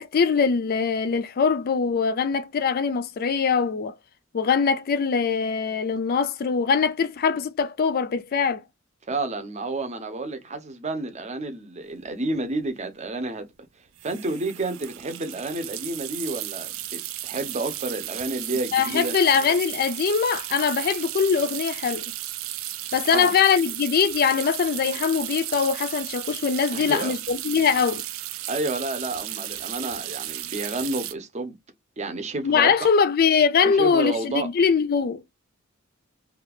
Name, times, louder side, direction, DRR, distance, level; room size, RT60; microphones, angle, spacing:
voice 1, 0.0-3.9 4.3-8.6 18.7-22.0 22.9-28.0 32.4-35.2, left 6 dB, 45° left, 0.4 m, -22 dB
voice 2, 9.1-13.5 14.0-19.1 23.1-23.3 26.7-27.1 28.5-31.5 32.0-32.9 33.6-34.5, right 2 dB, 35° right, 0.7 m, -30 dB
sound 1, 12.0-12.1 12.3-12.6 14.0-31.1, right 14 dB, 70° right, 0.4 m, -34 dB
2.7 x 2.4 x 3.4 m
head